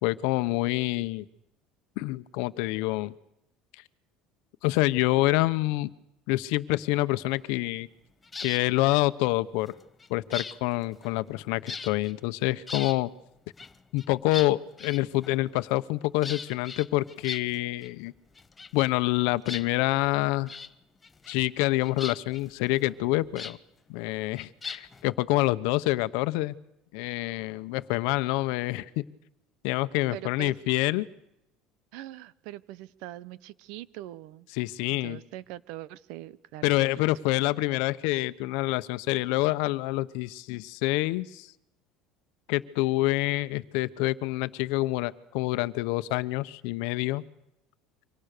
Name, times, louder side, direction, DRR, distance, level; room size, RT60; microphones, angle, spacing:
voice 1, 0.0-1.2 2.0-3.1 4.6-5.9 6.3-7.9 8.4-9.7 10.1-13.1 13.9-18.1 18.7-20.6 21.3-23.6 23.9-26.5 26.9-29.0 29.6-31.1 34.5-35.2 36.6-41.5 42.5-47.2, left 19 dB, 75° left, 14 dB, 1.0 m, -27 dB
sound 1, 8.2-8.7 9.6-11.4 11.7-12.1 12.5-13.0 13.6-15.5 16.2-17.9 18.2-19.2 19.4-20.1 20.5-20.7 21.0-21.6 21.8-23.6 24.4-25.0, left 4 dB, 15° left, 1.0 m, -40 dB
voice 2, 30.1-30.5 31.9-34.5 34.9-36.7, right 15 dB, 70° right, 20 dB, 1.0 m, -42 dB
28.5 x 25.0 x 6.8 m, 0.83 s
cardioid pair, 155°, 0 cm